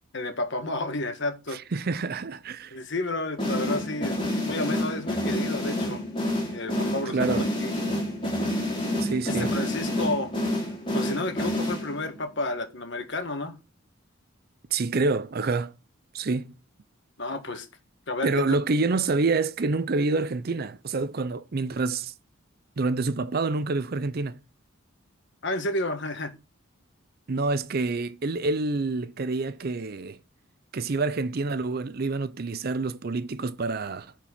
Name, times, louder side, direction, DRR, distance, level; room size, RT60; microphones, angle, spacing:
voice 1, 0.1-1.6 2.7-4.2 4.5-6.0 6.5-7.7 9.2-10.3 10.9-13.6 17.2-17.7 18.1-18.6 25.4-26.3, left 2 dB, 55° left, 1.5 m, -31 dB
voice 2, 1.5-2.8 7.1-7.5 9.0-9.6 14.7-15.7 16.1-16.5 18.2-22.1 22.8-24.4 27.3-30.2 30.7-34.1, right 3 dB, 45° right, 0.5 m, -27 dB
sound 1, 3.4-12.2, left 1 dB, 25° left, 3.5 m, -28 dB
9.3 x 4.5 x 5.7 m
head